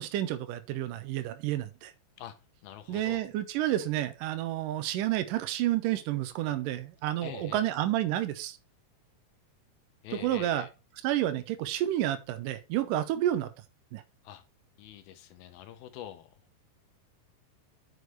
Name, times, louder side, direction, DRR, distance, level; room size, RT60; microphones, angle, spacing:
voice 1, 0.0-1.9 2.9-8.6 10.1-10.7 11.0-13.5 13.9-14.0, right 13 dB, 85° right, 1.9 m, -30 dB
voice 2, 2.6-3.3 7.2-7.7 10.0-10.7 14.2-14.4 14.8-16.4, left 11 dB, 75° left, 2.5 m, -45 dB
9.4 x 6.5 x 3.2 m
omnidirectional pair, 4.8 m